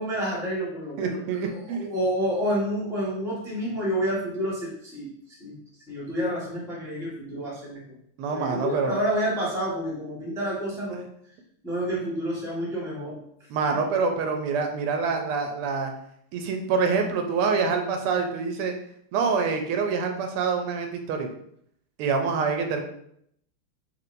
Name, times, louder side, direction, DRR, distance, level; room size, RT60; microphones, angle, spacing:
voice 1, 0.0-5.1 5.4-5.5 5.9-7.8 8.3-11.0 11.6-13.2, equal, ahead, -6 dB, 1.0 m, -29 dB
voice 2, 1.0-1.9 8.2-9.0 13.5-15.9 16.3-18.7 19.1-21.3 22.0-22.8, right 5 dB, 85° right, 4 dB, 1.5 m, -26 dB
4.3 x 3.3 x 2.6 m, 0.70 s
omnidirectional pair, 2.4 m